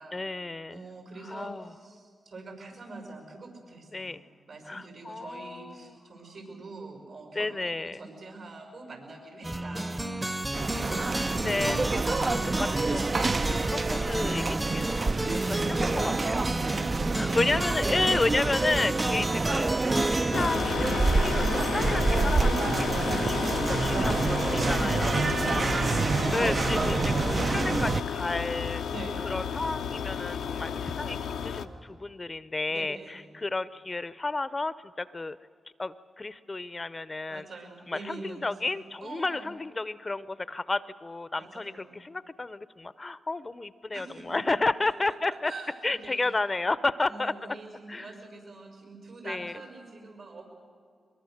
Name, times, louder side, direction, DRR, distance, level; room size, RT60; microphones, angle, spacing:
voice 1, 0.1-0.8 1.3-1.7 3.9-4.2 4.7-6.0 7.3-8.0 11.2-15.1 15.8-16.4 17.1-22.9 23.2-24.1 24.5-25.7 26.3-28.8 29.2-35.4 35.8-37.4 37.9-45.5 45.8-47.6 47.9-48.1 49.2-49.5, left 3 dB, 35° left, 16 dB, 0.6 m, -32 dB
voice 2, 0.7-4.2 4.5-7.5 7.8-10.1 15.1-15.5 16.5-18.3 23.9-24.5 28.9-29.4 32.7-33.3 37.3-38.7 39.0-39.5 41.3-41.9 43.9-44.4 44.8-46.2 47.0-50.5, right 3 dB, 85° right, 2 dB, 6.0 m, -44 dB
sound 1, 9.4-21.7, right 1 dB, 20° right, 0.8 m, -33 dB
sound 2, 10.5-28.0, right 3 dB, 50° right, 0.5 m, -27 dB
sound 3, 20.3-31.7, left 7 dB, 85° left, 0.7 m, -32 dB
22.5 x 22.0 x 6.6 m, 2.2 s
supercardioid pair, 45°, 0 cm